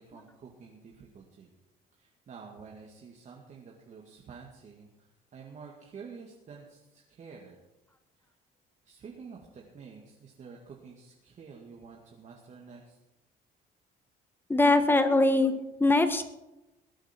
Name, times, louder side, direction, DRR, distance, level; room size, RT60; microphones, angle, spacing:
voice 1, 0.0-1.5 2.0-7.6 8.2-8.3 8.8-13.0, right 5 dB, 45° right, -2 dB, 2.3 m, -49 dB
voice 2, 14.5-16.3, left 2 dB, 10° left, 9 dB, 1.4 m, -23 dB
21.5 x 8.9 x 4.6 m, 0.97 s
cardioid pair, 110°, 17 cm